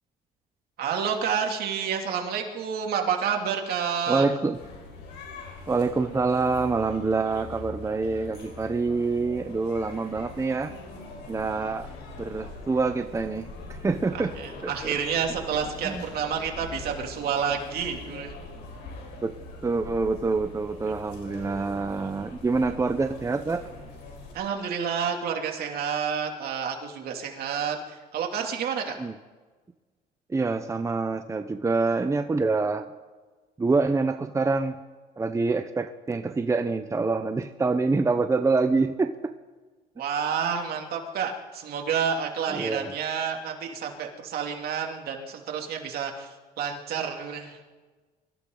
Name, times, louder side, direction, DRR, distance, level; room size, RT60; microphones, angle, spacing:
voice 1, 0.8-4.3 7.2-8.3 8.6-8.9 14.3-18.3 20.8-22.1 24.3-29.0 40.0-47.6, right 7 dB, 65° right, 2 dB, 2.8 m, -30 dB
voice 2, 4.1-4.6 5.7-10.7 11.3-11.9 12.2-14.3 14.6-14.9 15.8-16.0 19.2-19.3 19.6-23.6 29.0-29.1 30.3-33.0 33.6-34.7 35.2-39.3 42.5-42.9, right 3 dB, 15° right, 7 dB, 0.8 m, -26 dB
sound 1, 4.5-24.3, left 3 dB, 90° left, 4.7 m, -43 dB
24.0 x 15.0 x 3.9 m, 1.3 s
cardioid pair, 110°, 17 cm